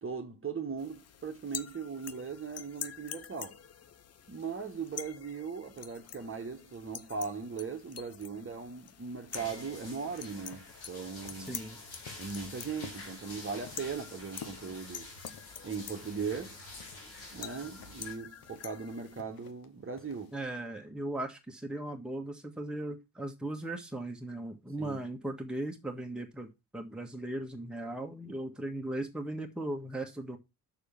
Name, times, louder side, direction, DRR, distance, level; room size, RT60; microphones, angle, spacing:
voice 1, 0.0-3.6 4.3-11.6 12.2-15.1 15.6-16.6 17.3-20.4 24.8-25.0, right 5 dB, 25° right, 1.4 m, -39 dB
sound 1, 0.8-19.2, left 8 dB, 30° left, 0.7 m, -47 dB
sound 2, 9.3-18.1, left 2 dB, 70° left, 3.7 m, -48 dB
sound 3, 10.3-20.4, left 7 dB, 45° left, 1.2 m, -54 dB
voice 2, 11.5-11.8 20.3-26.5 26.7-30.4, right 1 dB, ahead, 1.5 m, -38 dB
6.7 x 6.0 x 5.8 m
figure-of-eight pair, 40°, 49 cm